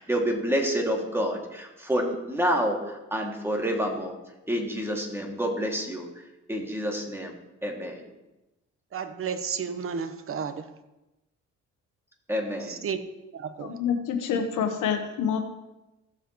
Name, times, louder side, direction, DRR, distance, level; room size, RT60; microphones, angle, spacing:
voice 1, 0.0-4.1 4.5-6.1 6.5-7.3 7.6-8.0 12.3-12.9, equal, 10° right, 0 dB, 2.3 m, -28 dB
voice 2, 8.9-10.7 12.6-13.0 13.3-13.7, right 6 dB, 45° right, 9 dB, 1.0 m, -32 dB
voice 3, 13.6-15.4, left 7 dB, 85° left, 4 dB, 1.1 m, -27 dB
16.0 x 7.3 x 3.1 m, 0.99 s
cardioid pair, 90°, 30 cm